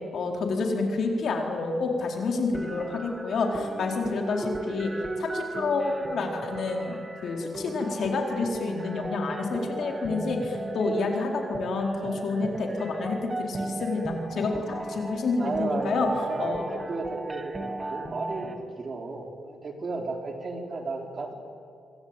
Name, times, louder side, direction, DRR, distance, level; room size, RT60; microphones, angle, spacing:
voice 1, 0.1-4.9 5.2-16.1 16.4-16.7, left 3 dB, 60° left, 2 dB, 4.2 m, -29 dB
sound 1, 2.5-18.5, right 2 dB, 20° right, 2.0 m, -36 dB
voice 2, 15.4-18.5 18.8-21.3, right 3 dB, 35° right, 3 dB, 3.9 m, -33 dB
27.0 x 24.5 x 9.0 m, 2.5 s
cardioid pair, 145°, 0 cm